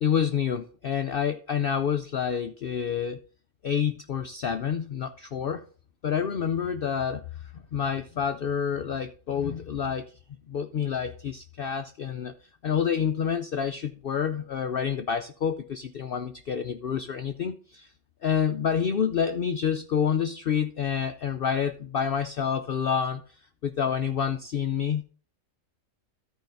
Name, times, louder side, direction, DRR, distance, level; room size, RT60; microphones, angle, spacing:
voice 1, 0.0-3.2 3.6-5.6 6.0-10.1 10.5-12.3 12.6-17.9 18.2-25.0, left 7 dB, 55° left, 7 dB, 0.7 m, -28 dB
14.0 x 4.8 x 3.8 m, 0.40 s
omnidirectional pair, 1.4 m